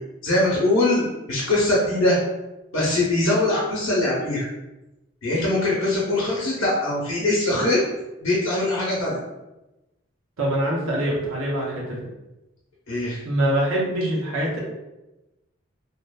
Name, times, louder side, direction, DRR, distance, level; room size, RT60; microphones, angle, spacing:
voice 1, 0.2-1.0 1.3-2.2 2.7-4.5 5.2-7.8 8.2-9.2 12.9-13.2, left 2 dB, 70° left, -6 dB, 0.6 m, -22 dB
voice 2, 10.4-12.0 13.2-14.6, right 1 dB, 85° right, -4 dB, 0.6 m, -24 dB
2.8 x 2.0 x 2.2 m, 0.99 s
head